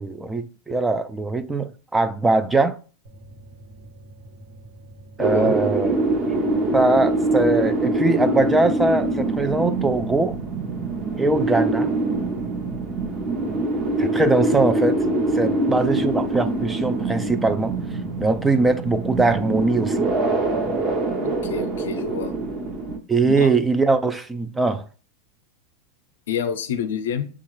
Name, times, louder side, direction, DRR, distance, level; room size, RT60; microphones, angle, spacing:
voice 1, 0.0-2.8 5.2-6.0 6.7-10.4 11.2-11.9 14.0-15.0 15.3-17.7 18.2-20.1 23.1-24.8, right 3 dB, 10° right, 0.3 m, -21 dB
sound 1, 3.0-20.9, right 1 dB, 60° right, 1.0 m, -45 dB
voice 2, 5.2-5.5 21.2-22.3 23.4-23.5 26.3-27.3, left 7 dB, 85° left, 0.5 m, -28 dB
sound 2, 5.2-23.0, right 2 dB, 30° right, 0.8 m, -24 dB
7.0 x 2.4 x 3.0 m
supercardioid pair, 140°, 0 cm